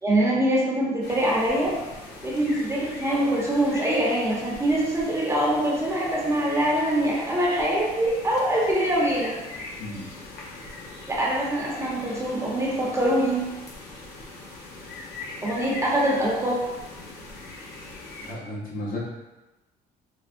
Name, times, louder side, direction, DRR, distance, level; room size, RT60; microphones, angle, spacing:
voice 1, 0.0-1.7 2.2-9.3 11.1-13.4 15.4-16.6, right 1 dB, 15° right, -5 dB, 0.8 m, -24 dB
sound 1, 1.0-18.3, left 2 dB, 80° left, 0.7 m, -41 dB
voice 2, 9.8-10.1 18.2-19.0, left 1 dB, 55° left, -5 dB, 1.1 m, -33 dB
4.3 x 2.1 x 2.5 m, 1.1 s
cardioid pair, 110°, 17 cm